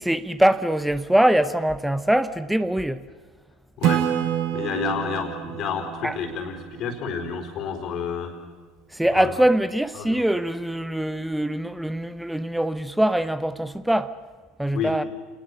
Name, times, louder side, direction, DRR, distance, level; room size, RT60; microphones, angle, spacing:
voice 1, 0.0-3.0 6.0-6.2 8.9-14.1 14.6-15.0, right 1 dB, 5° right, 1.0 m, -23 dB
voice 2, 3.8-4.1 4.5-8.3 9.1-9.3 10.0-10.2 14.7-14.9, left 6 dB, 50° left, 4.4 m, -30 dB
Acoustic guitar / Strum, 3.8-7.4, right 10 dB, 55° right, 1.7 m, -28 dB
28.5 x 20.5 x 6.8 m
hypercardioid pair, 70°, 0 cm